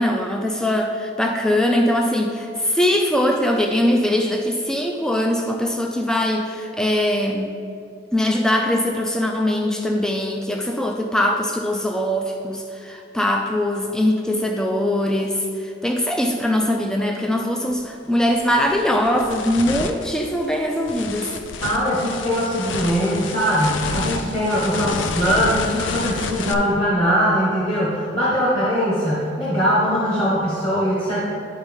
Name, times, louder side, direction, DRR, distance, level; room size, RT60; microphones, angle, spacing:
voice 1, 0.0-7.5 8.1-21.3, left 1 dB, 5° left, 2 dB, 0.4 m, -21 dB
sound 1, 17.7-17.9 18.3-26.5, left 4 dB, 80° left, 0.5 m, -30 dB
voice 2, 21.6-31.2, equal, 30° left, -8 dB, 1.2 m, -21 dB
11.0 x 4.4 x 3.5 m, 2.5 s
head